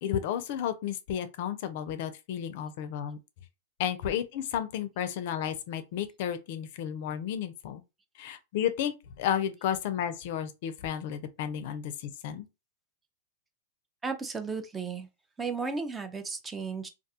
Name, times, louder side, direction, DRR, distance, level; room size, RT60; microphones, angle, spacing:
voice 1, 0.0-3.2 3.8-7.8 8.2-12.5, left 9 dB, 60° left, 0.4 m, -32 dB
voice 2, 14.0-15.1 15.4-16.9, right 4 dB, 15° right, 0.4 m, -34 dB
2.4 x 2.3 x 2.7 m
hypercardioid pair, 120°, 0 cm